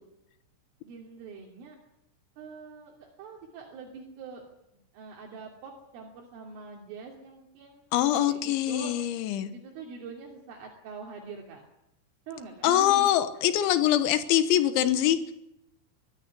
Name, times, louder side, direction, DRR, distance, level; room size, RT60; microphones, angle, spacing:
voice 1, 0.8-1.8 2.4-4.5 4.9-7.8 8.3-8.9 9.5-11.6 12.3-13.1, right 5 dB, 75° right, -1 dB, 5.3 m, -44 dB
voice 2, 7.9-9.5 12.6-15.3, left 12 dB, 75° left, 11 dB, 3.4 m, -24 dB
23.5 x 15.0 x 9.8 m, 0.84 s
omnidirectional pair, 5.8 m